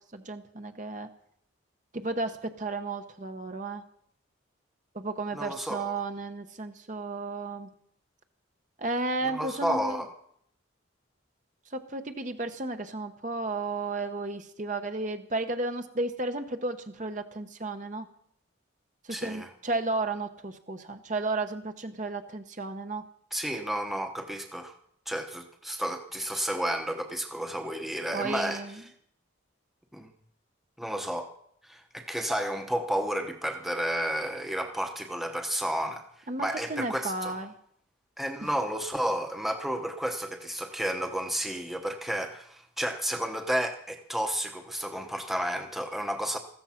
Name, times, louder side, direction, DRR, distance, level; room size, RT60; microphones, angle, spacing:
voice 1, 0.1-1.1 1.9-3.8 4.9-7.7 8.8-10.0 11.7-18.1 19.0-23.0 28.1-28.8 36.3-37.5 38.4-38.5, right 2 dB, 40° right, 7 dB, 0.9 m, -33 dB
voice 2, 5.3-6.0 9.2-10.1 19.1-19.5 23.3-24.7 25.1-28.6 29.9-30.1 30.8-31.3 31.6-37.3 38.2-46.4, equal, ahead, 5 dB, 0.9 m, -32 dB
15.0 x 13.5 x 5.8 m, 0.69 s
head